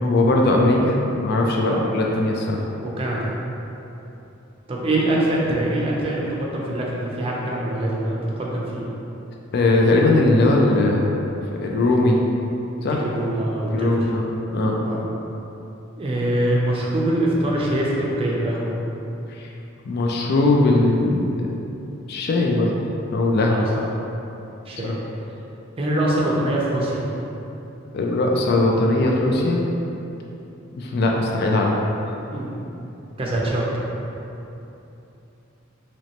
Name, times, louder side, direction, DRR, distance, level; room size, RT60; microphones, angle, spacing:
voice 1, 0.0-2.7 9.5-11.2 11.6-12.2 12.8-13.0 13.7-14.8 19.3-19.5 19.9-21.5 22.1-22.7 23.1-23.6 24.8-24.9 27.9-29.6 30.8-31.7, left 2 dB, 55° left, 0 dB, 0.3 m, -19 dB
voice 2, 2.8-3.3 4.7-8.9 12.8-14.0 14.8-15.0 16.0-18.7 23.4-23.7 24.7-24.9 25.8-27.1 32.3-32.6 33.2-33.6, right 1 dB, 30° right, -4 dB, 0.5 m, -24 dB
3.0 x 3.0 x 2.9 m, 2.9 s
head